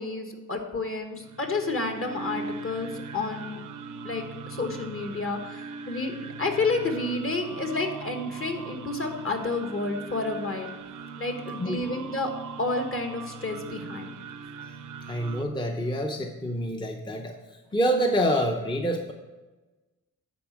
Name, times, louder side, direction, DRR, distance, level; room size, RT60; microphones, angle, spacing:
voice 1, 0.0-3.6 4.0-10.7 11.2-12.3 12.6-14.1, left 3 dB, 40° left, 4 dB, 1.3 m, -30 dB
sound 1, 1.2-15.4, right 4 dB, 65° right, 0.6 m, -40 dB
voice 2, 15.1-17.3 17.7-19.1, equal, 15° left, 3 dB, 0.7 m, -27 dB
9.8 x 4.2 x 7.2 m, 1.2 s
cardioid pair, 85°, 33 cm